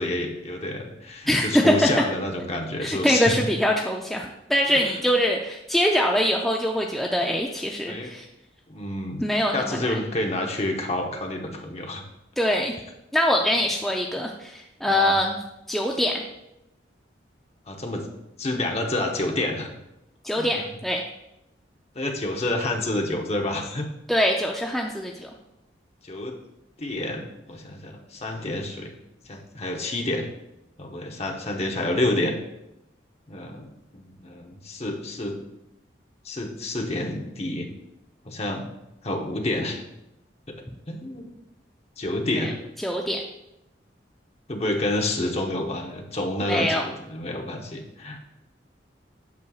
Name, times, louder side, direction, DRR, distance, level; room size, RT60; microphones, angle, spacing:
voice 1, 0.0-3.4 4.7-4.8 7.9-8.1 8.7-12.0 14.9-15.2 17.7-18.1 18.4-19.7 20.4-20.5 21.9-23.9 26.0-26.4 26.8-28.9 29.3-30.2 30.8-32.4 33.3-35.4 36.2-37.7 38.2-38.7 39.0-39.8 40.5-40.6 40.9-41.3 42.0-42.5 44.5-48.2, left 1 dB, 35° left, 2 dB, 0.8 m, -29 dB
voice 2, 1.3-2.0 2.8-8.3 9.2-10.0 12.4-12.7 13.1-15.4 15.7-16.2 20.2-21.0 24.1-25.3 42.4-42.5 42.8-43.2 46.4-46.8, equal, ahead, 0 dB, 0.3 m, -23 dB
8.3 x 6.3 x 2.4 m, 0.88 s
head